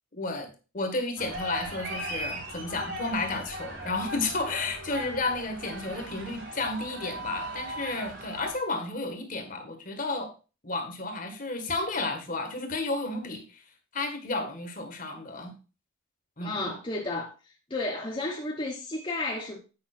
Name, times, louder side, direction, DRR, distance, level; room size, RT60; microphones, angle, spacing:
voice 1, 0.1-0.5 0.7-10.3 10.6-13.6 13.9-15.5 16.4-16.7, left 3 dB, 40° left, 1.5 m, -32 dB
sound 1, 1.2-8.5, right 1 dB, 75° right, 5.4 m, -38 dB
voice 2, 16.4-17.3 17.7-19.6, left 2 dB, 25° left, 1.2 m, -32 dB
8.9 x 5.2 x 4.3 m
head